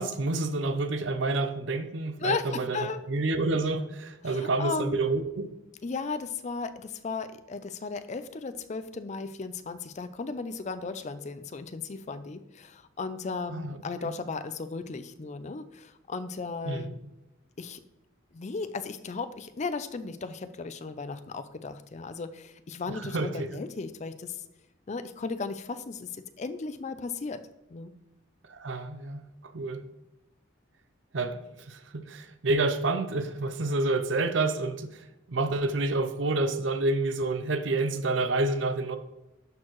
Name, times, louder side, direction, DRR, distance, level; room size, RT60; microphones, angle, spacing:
voice 1, 0.0-2.8 3.1-5.5 13.5-14.1 16.6-17.0 22.9-23.5 28.5-29.8 31.1-39.0, right 2 dB, 70° right, 0.6 m, -29 dB
voice 2, 2.2-3.0 4.2-5.0 5.8-17.0 17.6-17.8 18.3-24.4 24.9-27.4 27.7-27.9, left 4 dB, 35° left, 0.4 m, -35 dB
12.0 x 4.5 x 3.1 m
head